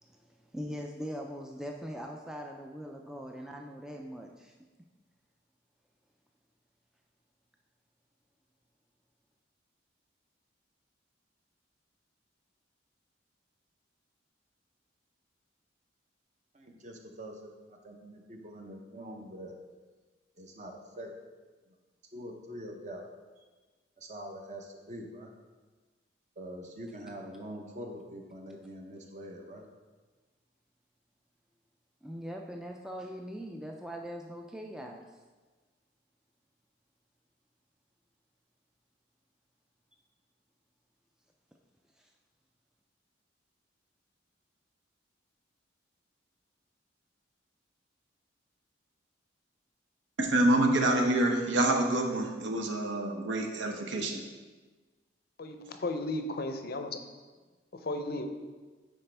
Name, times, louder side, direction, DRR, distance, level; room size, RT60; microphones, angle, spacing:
voice 1, 0.0-4.5 32.0-35.0 42.0-42.1, equal, 5° right, 1 dB, 0.3 m, -41 dB
voice 2, 16.5-19.5 20.4-21.1 21.7-21.8 22.1-23.0 24.0-25.3 26.4-29.6, equal, 40° right, 3 dB, 0.8 m, -44 dB
voice 3, 50.2-54.2, right 1 dB, 75° right, 3 dB, 0.8 m, -27 dB
voice 4, 55.4-57.0 57.7-58.2, left 2 dB, 50° left, 7 dB, 0.5 m, -35 dB
9.9 x 4.2 x 3.3 m, 1.3 s
head